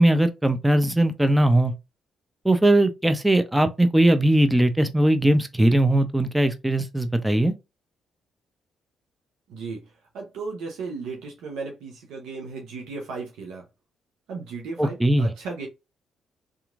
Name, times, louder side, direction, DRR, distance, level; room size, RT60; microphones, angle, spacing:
voice 1, 0.0-1.7 2.4-7.5 14.8-15.3, right 1 dB, 10° right, 0.6 m, -20 dB
voice 2, 9.5-9.8 10.1-13.7 14.3-15.7, right 4 dB, 75° right, 0.7 m, -35 dB
2.9 x 2.4 x 2.4 m
hypercardioid pair, 50°, 0 cm